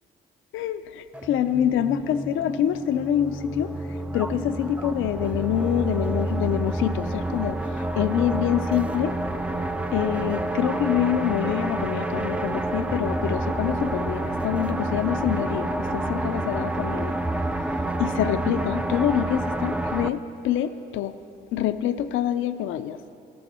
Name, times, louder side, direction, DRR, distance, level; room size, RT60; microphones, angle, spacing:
voice 1, 0.5-9.2 9.9-17.2 18.0-21.1 21.5-23.0, left 10 dB, 85° left, 11 dB, 0.5 m, -26 dB
sound 1, 1.1-20.1, right 1 dB, 5° right, 0.4 m, -28 dB
13.0 x 12.0 x 4.3 m, 2.8 s
cardioid pair, 90°, 20 cm